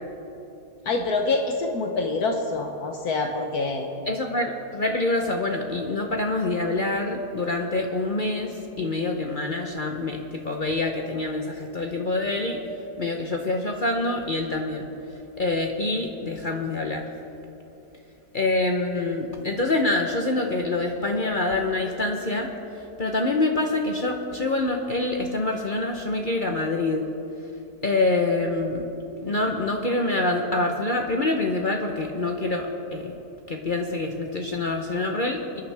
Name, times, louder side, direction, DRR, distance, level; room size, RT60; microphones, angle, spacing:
voice 1, 0.8-3.9, left 3 dB, 65° left, 3 dB, 1.4 m, -26 dB
voice 2, 4.1-12.6 13.0-14.9 15.4-17.0 18.3-22.5 23.0-27.0 27.8-28.8 29.2-33.1 33.5-35.6, left 2 dB, 40° left, 2 dB, 0.7 m, -26 dB
27.5 x 10.0 x 3.4 m, 2.9 s
omnidirectional pair, 1.8 m